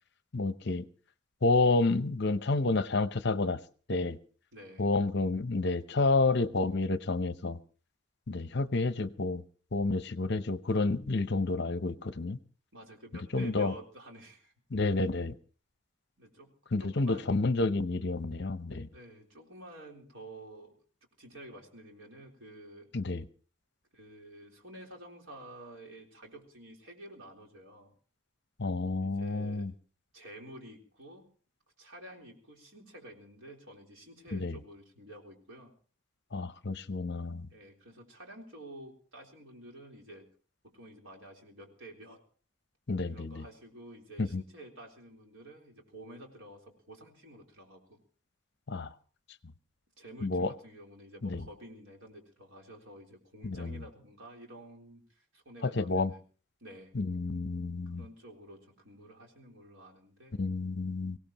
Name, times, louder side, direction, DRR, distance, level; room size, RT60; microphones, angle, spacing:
voice 1, 0.3-0.8 1.4-3.6 3.9-4.2 4.8-7.6 8.3-9.4 9.7-12.4 13.3-13.7 14.7-15.3 16.7-18.9 22.9-23.2 28.6-29.7 34.3-34.6 36.3-37.5 42.9-43.4 44.2-44.4 48.7-48.9 50.2-50.5 51.2-51.5 53.4-53.8 55.6-56.1 56.9-58.0 60.4-61.2, left 3 dB, 55° left, 12 dB, 0.7 m, -29 dB
voice 2, 4.5-4.9 12.7-14.5 16.2-17.4 18.9-20.8 21.2-22.9 23.9-27.9 29.0-29.7 30.1-31.3 31.8-35.7 37.5-40.3 40.6-42.2 43.1-48.0 50.0-56.2 56.6-56.9 57.9-60.4, right 1 dB, 75° right, 1 dB, 3.8 m, -50 dB
24.0 x 17.0 x 3.0 m, 0.41 s
head